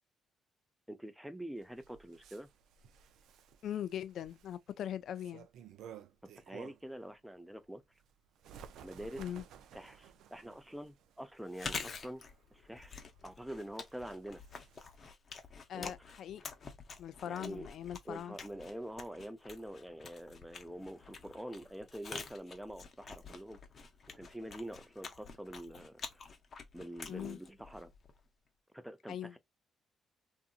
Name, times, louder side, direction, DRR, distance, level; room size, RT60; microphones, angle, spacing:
voice 1, 0.9-2.5 6.4-7.8 8.8-9.2 9.7-12.2 12.5-14.4 15.7-15.9 17.2-17.7 18.1-23.6 24.1-26.2 26.7-27.9 28.7-29.4, right 1 dB, 5° right, 0.5 m, -46 dB
Bird, 1.6-7.0 7.4-15.1, right 8 dB, 80° right, 0.3 m, -56 dB
voice 2, 3.6-5.5 9.2-9.4 15.7-16.4 17.0-18.4 27.1-27.4 29.1-29.3, left 10 dB, 70° left, 0.3 m, -41 dB
Chewing mastication, 11.4-28.3, left 5 dB, 45° left, 0.7 m, -48 dB
2.7 x 2.6 x 2.3 m
cardioid pair, 90°, 0 cm